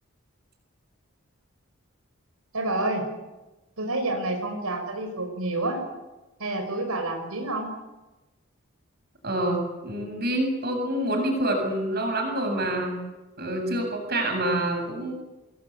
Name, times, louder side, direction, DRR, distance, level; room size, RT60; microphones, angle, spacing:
voice 1, 2.5-3.0 3.8-5.8 6.4-7.7, right 2 dB, 90° right, 4 dB, 5.6 m, -28 dB
voice 2, 9.2-13.0 13.4-15.1, right 1 dB, 45° right, 4 dB, 7.6 m, -27 dB
27.5 x 21.0 x 8.6 m, 1.1 s
head